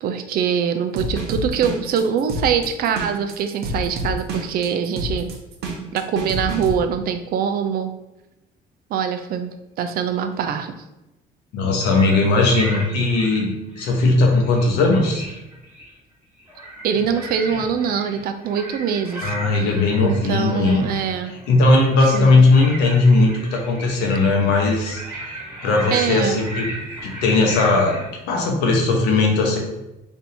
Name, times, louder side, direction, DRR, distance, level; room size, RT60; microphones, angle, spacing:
voice 1, 0.0-5.4 5.9-7.9 8.9-10.7 16.8-19.4 20.0-21.3 22.1-22.4 25.9-26.4, right 7 dB, 60° right, 8 dB, 0.4 m, -23 dB
sound 1, 1.0-6.7, right 1 dB, 80° right, 0.8 m, -28 dB
voice 2, 11.5-15.2 19.2-21.0 21.5-26.6 27.0-27.9 28.3-29.6, left 3 dB, 85° left, 0 dB, 1.0 m, -18 dB
sound 2, 11.9-14.0 14.3-16.0 16.4-28.1, right 1 dB, 10° right, 1.3 m, -36 dB
3.4 x 2.6 x 4.3 m, 0.95 s
cardioid pair, 110°, 17 cm